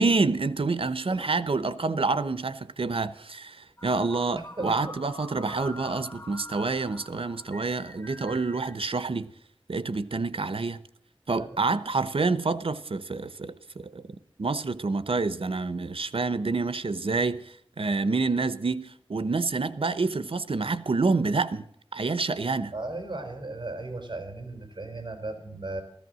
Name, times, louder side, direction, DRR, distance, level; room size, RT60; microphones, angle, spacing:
voice 1, 0.0-9.3 9.7-10.8 11.3-14.0 14.4-21.7 21.9-22.7, right 3 dB, 90° right, 0.9 m, -27 dB
sound 1, 3.8-8.8, left 1 dB, 25° left, 1.5 m, -45 dB
voice 2, 4.3-4.9 5.9-6.0 11.3-11.6 22.7-25.8, right 2 dB, 55° right, 4.1 m, -36 dB
15.5 x 14.5 x 6.3 m
wide cardioid pair, 50°, 9 cm